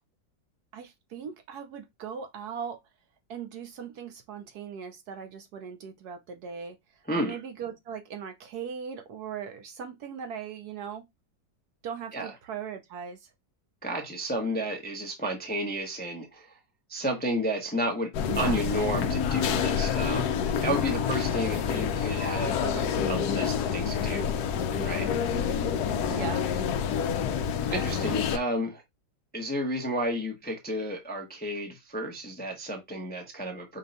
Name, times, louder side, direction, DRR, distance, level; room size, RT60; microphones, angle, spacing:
voice 1, 0.7-2.8 3.3-6.8 7.1-11.0 11.8-13.3 18.2-18.6 22.6-22.9 26.1-26.5, right 7 dB, 70° right, 1.1 m, -39 dB
voice 2, 7.1-7.4 12.1-12.3 13.8-16.5 16.9-18.1 18.4-22.6 23.1-24.4 24.8-25.1 27.7-28.8 29.3-33.8, equal, 10° left, 0.5 m, -32 dB
sound 1, 18.1-28.4, left 7 dB, 70° left, 1.0 m, -28 dB
5.3 x 2.2 x 3.9 m
omnidirectional pair, 2.0 m